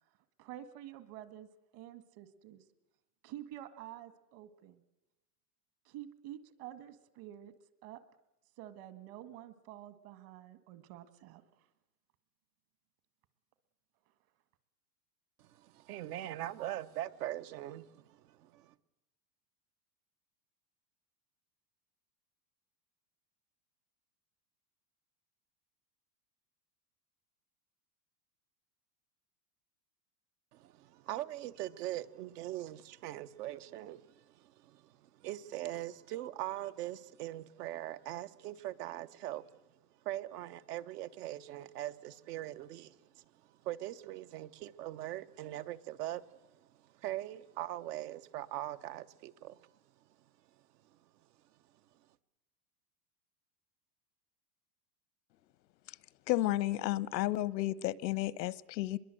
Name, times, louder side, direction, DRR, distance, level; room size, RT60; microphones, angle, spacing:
voice 1, 0.4-2.6 3.2-4.8 5.9-7.5 7.8-8.0 8.6-11.4, right 12 dB, 50° right, 1.9 m, -49 dB
voice 2, 15.4-18.7 30.5-51.5 51.9-52.1, right 14 dB, 70° right, 1.2 m, -42 dB
voice 3, 56.3-59.0, left 15 dB, 85° left, 1.0 m, -32 dB
24.5 x 21.5 x 7.8 m
supercardioid pair, 145°, 49 cm